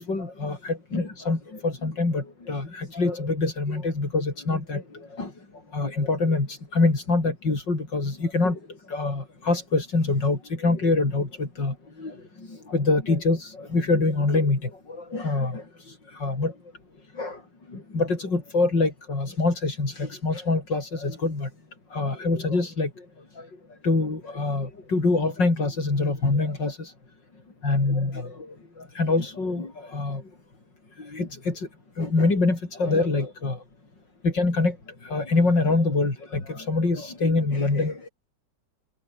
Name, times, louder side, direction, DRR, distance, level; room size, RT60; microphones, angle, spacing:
voice 1, 0.0-4.8 5.2-5.3 5.7-6.5 6.7-8.6 8.9-12.1 12.7-14.7 15.0-15.6 16.2-16.5 17.2-17.4 17.7-21.5 21.9-22.9 23.8-26.9 27.6-28.4 29.0-30.2 31.1-31.6 32.0-33.6 34.2-34.8 35.1-38.1, left 3 dB, 80° left, 6.0 m, -25 dB
omnidirectional pair, 1.9 m